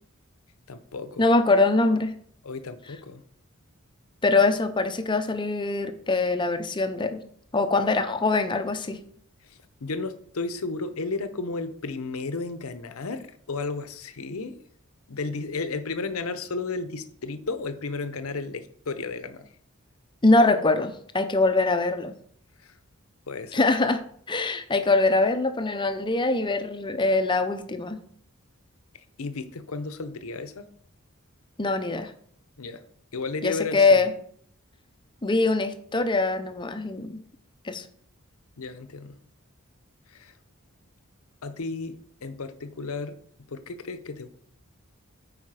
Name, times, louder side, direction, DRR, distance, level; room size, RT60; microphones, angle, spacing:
voice 1, 0.7-1.2 2.4-3.2 9.4-14.6 15.1-19.5 22.6-22.8 23.3-23.6 29.2-30.7 32.6-32.8 33.1-34.1 38.6-39.2 40.1-40.3 41.4-43.2 43.5-44.3, left 3 dB, 75° left, 11 dB, 0.8 m, -33 dB
voice 2, 1.2-2.1 4.2-7.2 7.5-9.0 20.2-22.1 23.5-28.0 31.6-32.1 33.4-34.1 35.2-37.2 37.6-37.9, left 3 dB, 20° left, 9 dB, 0.7 m, -23 dB
8.7 x 5.0 x 4.8 m, 0.62 s
head